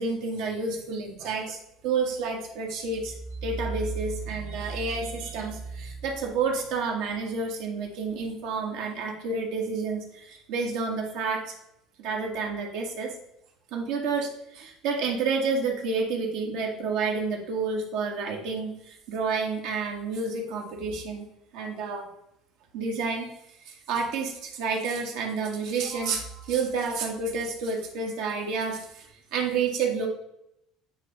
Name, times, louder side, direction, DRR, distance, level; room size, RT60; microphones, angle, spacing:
voice 1, 0.0-3.1 3.4-11.4 12.0-13.1 13.7-21.3 21.5-22.1 22.7-23.3 23.7-29.1 29.3-30.1, right 4 dB, 80° right, 1 dB, 1.7 m, -29 dB
8.9 x 3.0 x 5.2 m, 0.79 s
supercardioid pair, 110°, 0 cm